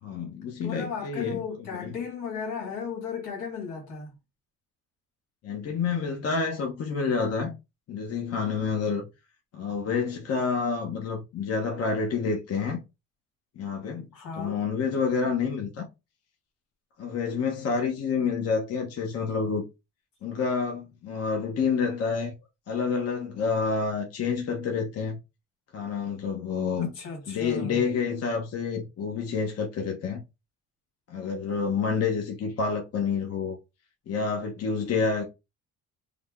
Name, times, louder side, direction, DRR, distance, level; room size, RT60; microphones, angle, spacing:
voice 1, 0.0-2.0 5.4-7.5 7.9-9.0 9.5-12.8 13.6-14.1 14.4-15.9 17.0-19.6 20.2-22.3 22.7-25.2 25.7-26.9 27.3-30.2 31.1-33.6 34.1-35.2, left 5 dB, 50° left, 0.9 m, -28 dB
voice 2, 0.6-4.1 14.1-14.6 26.8-27.8, left 5 dB, 80° left, 1.9 m, -35 dB
3.4 x 2.2 x 3.5 m
cardioid pair, 105°, 31 cm